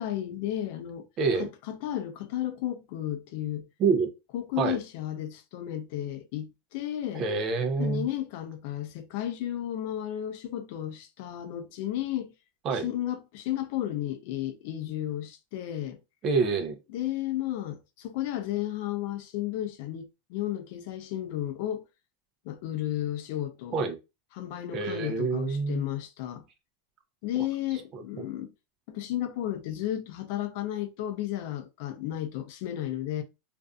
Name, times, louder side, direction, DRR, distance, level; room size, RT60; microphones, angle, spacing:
voice 1, 0.0-1.1 1.4-3.7 4.3-7.3 7.8-12.3 12.7-16.0 16.9-21.8 22.4-23.9 24.3-26.5 27.2-28.5 28.9-33.2, left 12 dB, 55° left, 0.5 m, -33 dB
voice 2, 1.2-1.5 3.8-4.1 4.6-4.8 7.1-8.1 12.6-12.9 16.2-16.8 23.7-24.0 24.7-25.8 27.9-28.0, right 4 dB, 35° right, 0.5 m, -27 dB
2.5 x 2.4 x 2.3 m
supercardioid pair, 150°, 0 cm